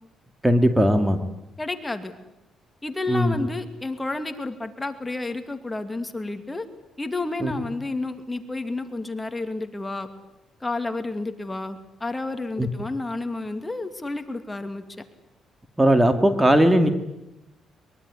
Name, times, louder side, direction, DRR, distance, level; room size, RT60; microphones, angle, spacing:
voice 1, 0.4-1.2 3.1-3.3 7.4-7.5 12.6-12.7 15.8-16.9, right 1 dB, 10° right, 9 dB, 2.3 m, -18 dB
voice 2, 1.6-2.1 2.8-6.7 7.0-10.1 10.6-14.8, left 2 dB, 15° left, 8 dB, 2.4 m, -30 dB
23.0 x 22.5 x 9.9 m, 0.89 s
cardioid pair, 90°, 0 cm